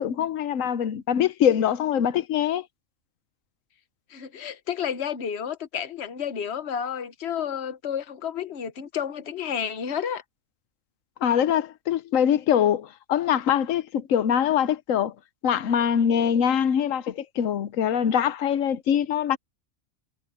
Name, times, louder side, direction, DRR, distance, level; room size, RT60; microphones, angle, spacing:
voice 1, 0.0-2.6 11.2-15.1 15.4-19.4, left 9 dB, 80° left, 1.2 m, -23 dB
voice 2, 4.1-10.2, left 8 dB, 55° left, 1.3 m, -31 dB
omnidirectional pair, 1.3 m